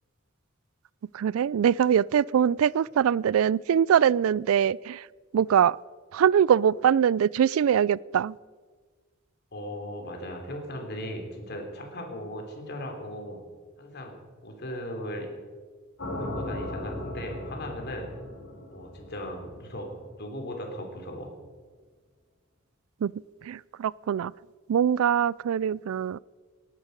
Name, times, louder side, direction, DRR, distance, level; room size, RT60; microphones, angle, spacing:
voice 1, 1.1-5.1 5.3-5.8 6.1-8.4 23.0-23.1 23.4-24.3 24.7-26.2, right 8 dB, 90° right, 25 dB, 0.3 m, -23 dB
voice 2, 9.5-13.4 13.8-15.3 16.2-18.1 18.7-21.3, equal, 55° left, 3 dB, 3.3 m, -38 dB
sound 1, 16.0-20.1, left 1 dB, 70° left, 5.9 m, -37 dB
19.5 x 11.5 x 5.3 m, 1.5 s
head